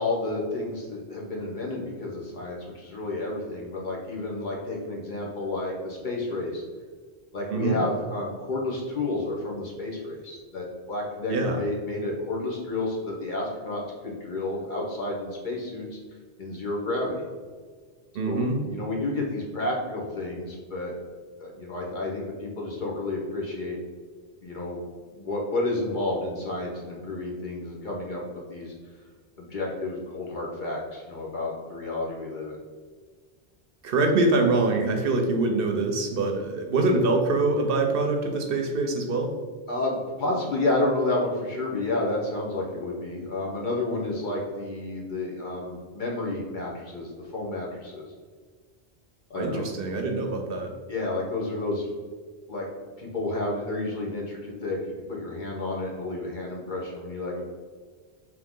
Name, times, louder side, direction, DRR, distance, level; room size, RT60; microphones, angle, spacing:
voice 1, 0.0-6.6 7.3-16.0 16.4-17.3 18.2-20.9 21.4-23.8 24.4-24.8 25.1-28.2 28.5-28.7 29.4-32.6 39.7-48.0 49.3-49.6 50.9-51.9 52.5-52.7 53.0-57.4, left 2 dB, 50° left, -3 dB, 1.0 m, -30 dB
voice 2, 7.5-7.8 11.3-11.6 18.1-18.7 33.8-39.4 49.3-50.7, right 3 dB, 65° right, 4 dB, 0.7 m, -24 dB
3.8 x 3.0 x 3.6 m, 1.5 s
omnidirectional pair, 1.1 m